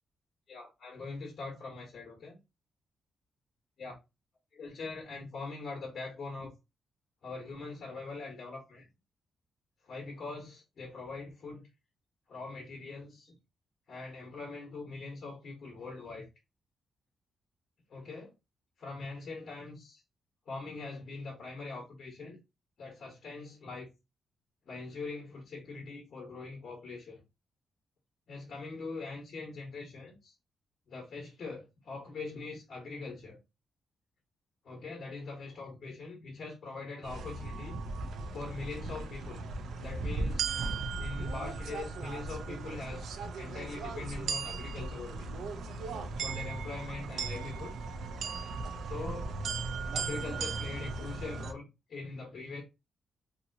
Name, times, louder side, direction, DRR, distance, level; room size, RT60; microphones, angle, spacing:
voice 1, 0.5-2.4 3.8-3.9 4.5-6.5 7.2-8.9 9.8-11.7 12.3-13.4 13.9-16.3 17.9-18.3 18.8-20.0 20.5-22.4 22.8-23.9 24.6-27.2 28.3-30.3 30.9-33.4 34.6-37.8 38.3-39.4 39.8-40.5 41.0-45.3 46.2-47.7 48.8-49.3 49.9-52.6, left 3 dB, 55° left, 1.1 m, -42 dB
sound 1, 37.0-51.5, right 4 dB, 80° right, 0.4 m, -37 dB
3.0 x 2.7 x 2.6 m
cardioid pair, 140°, 0 cm